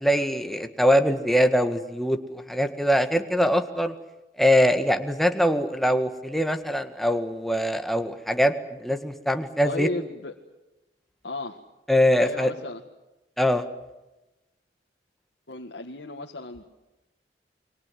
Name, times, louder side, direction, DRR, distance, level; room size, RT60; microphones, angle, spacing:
voice 1, 0.0-3.9 4.4-9.9 11.9-12.5 13.4-13.7, equal, ahead, 7 dB, 1.7 m, -23 dB
voice 2, 9.6-10.3 11.2-11.6 12.2-12.8 15.5-16.6, left 2 dB, 85° left, 0 dB, 1.9 m, -34 dB
28.5 x 24.0 x 7.7 m, 1.0 s
head